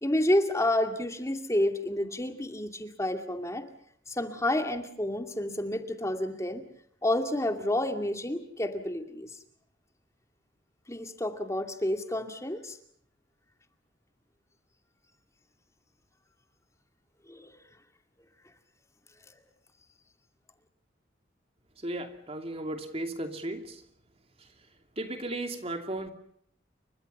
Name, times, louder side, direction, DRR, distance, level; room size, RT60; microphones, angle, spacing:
voice 1, 0.0-3.6 4.1-6.6 7.0-9.3 10.9-12.8 17.3-17.5, left 1 dB, 15° left, 6 dB, 2.4 m, -29 dB
voice 2, 21.8-23.6 25.0-26.1, right 1 dB, 30° right, 6 dB, 2.8 m, -35 dB
29.5 x 24.5 x 5.6 m, 0.65 s
head